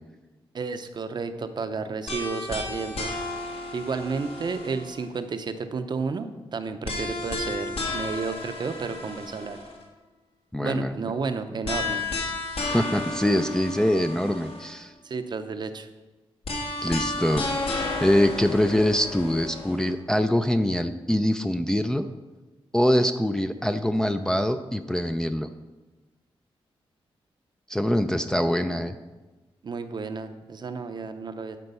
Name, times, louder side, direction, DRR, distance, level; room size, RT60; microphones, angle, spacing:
voice 1, 0.5-3.1 3.7-9.6 10.6-12.0 15.0-15.9 28.6-28.8 29.6-31.6, right 4 dB, 45° right, 9 dB, 0.6 m, -32 dB
sound 1, 2.1-5.2 6.8-9.8 11.6-14.8 16.4-19.9, left 2 dB, 70° left, 1.9 m, -32 dB
voice 2, 10.5-10.9 12.6-14.9 16.8-17.5 18.0-22.0 22.7-25.5 27.7-29.0, left 1 dB, 5° left, 7 dB, 0.4 m, -24 dB
12.0 x 4.6 x 5.4 m, 1.2 s
wide cardioid pair, 130°, 10 cm